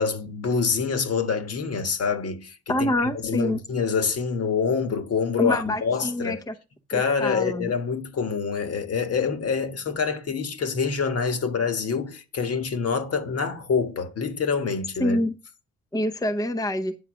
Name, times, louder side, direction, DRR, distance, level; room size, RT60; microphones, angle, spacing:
voice 1, 0.0-6.4 6.9-15.2, left 5 dB, 50° left, 1.4 m, -26 dB
voice 2, 2.7-3.6 5.4-6.5 6.9-7.7 15.0-15.3 15.9-17.0, left 1 dB, 10° left, 0.7 m, -26 dB
9.4 x 4.0 x 6.1 m
cardioid pair, 90°, 30 cm